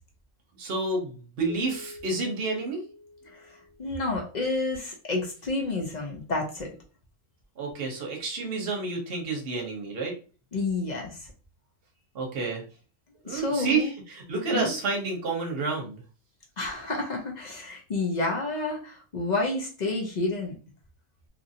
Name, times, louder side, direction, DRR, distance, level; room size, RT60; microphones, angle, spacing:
voice 1, 0.6-2.8 7.6-10.1 12.1-12.6 13.2-16.0, right 3 dB, 50° right, 1 dB, 1.0 m, -29 dB
Keyboard (musical), 1.5-4.5, left 1 dB, 85° left, 1.5 m, -47 dB
voice 2, 3.3-6.7 10.5-11.3 13.2-13.9 14.5-14.7 16.6-20.6, left 2 dB, 50° left, 0 dB, 0.5 m, -30 dB
3.0 x 2.5 x 2.7 m, 0.36 s
omnidirectional pair, 1.5 m